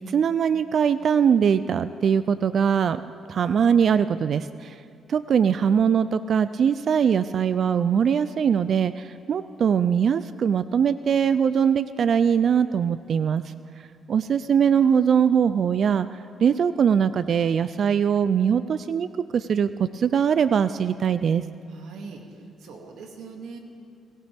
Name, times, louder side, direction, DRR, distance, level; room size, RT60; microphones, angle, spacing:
voice 1, 0.0-3.0 3.3-4.8 5.1-13.4 14.1-16.1 16.4-21.4, right 7 dB, 55° right, 14 dB, 0.4 m, -21 dB
voice 2, 21.7-23.6, right 4 dB, 80° right, 2 dB, 2.1 m, -41 dB
26.0 x 16.0 x 3.5 m, 2.4 s
cardioid pair, 90°, 0 cm